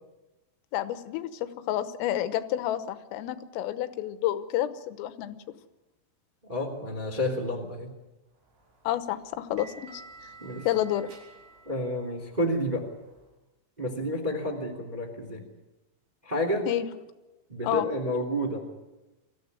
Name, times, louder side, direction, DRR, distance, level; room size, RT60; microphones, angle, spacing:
voice 1, 0.7-5.4 8.9-10.0 10.7-11.1 16.7-16.9 17.6-17.9, left 12 dB, 85° left, 11 dB, 3.6 m, -29 dB
voice 2, 6.4-7.9 10.4-10.7 11.6-12.9 13.8-15.4 16.2-16.7 17.5-18.7, left 1 dB, 15° right, 2 dB, 1.7 m, -30 dB
sound 1, 8.5-13.3, right 3 dB, 55° right, 6.8 m, -51 dB
24.0 x 15.0 x 9.6 m, 1.1 s
omnidirectional pair, 5.8 m